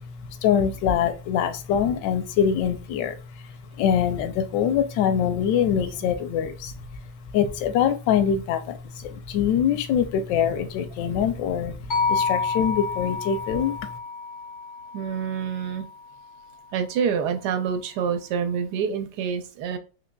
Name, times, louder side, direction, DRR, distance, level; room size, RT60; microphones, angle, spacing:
voice 1, 0.0-3.2 3.8-7.0 7.3-13.8, left 8 dB, 85° left, 9 dB, 1.2 m, -24 dB
sound 1, 11.9-16.1, left 4 dB, 55° left, 0.5 m, -29 dB
voice 2, 14.9-15.9 16.7-19.8, right 7 dB, 75° right, 7 dB, 1.1 m, -27 dB
3.9 x 3.0 x 2.2 m, 0.34 s
omnidirectional pair, 1.9 m